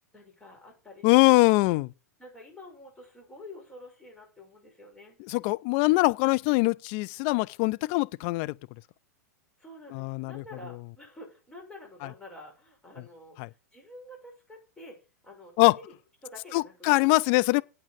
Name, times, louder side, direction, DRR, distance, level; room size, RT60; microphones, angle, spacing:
voice 1, 0.1-1.4 2.2-5.2 9.6-15.9 16.2-17.6, left 1 dB, 10° left, 6.0 m, -48 dB
voice 2, 1.0-1.9 5.3-8.6 9.9-10.4 13.4-13.5 15.6-15.8 16.5-17.6, left 23 dB, 45° left, 0.5 m, -23 dB
8.8 x 8.7 x 6.7 m
figure-of-eight pair, 100°, 9 cm